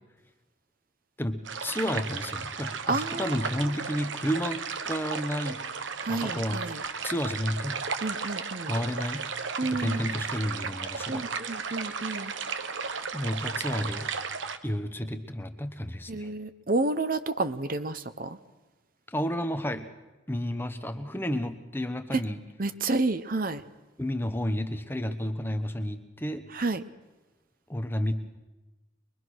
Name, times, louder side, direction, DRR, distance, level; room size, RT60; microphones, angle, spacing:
voice 1, 1.2-5.6 6.0-7.8 8.7-9.3 9.6-11.3 13.1-14.1 14.6-16.3 19.1-19.9 20.3-22.4 24.0-26.5 27.7-28.1, equal, 10° left, 8 dB, 1.0 m, -31 dB
sound 1, 1.4-14.6, right 5 dB, 80° right, 1.3 m, -34 dB
voice 2, 2.9-3.4 6.0-6.8 8.0-8.7 9.6-10.0 11.1-12.3 16.1-18.4 22.1-22.2 22.6-23.6 26.5-26.8, right 3 dB, 45° right, 11 dB, 0.9 m, -30 dB
24.0 x 22.0 x 6.3 m, 1.1 s
head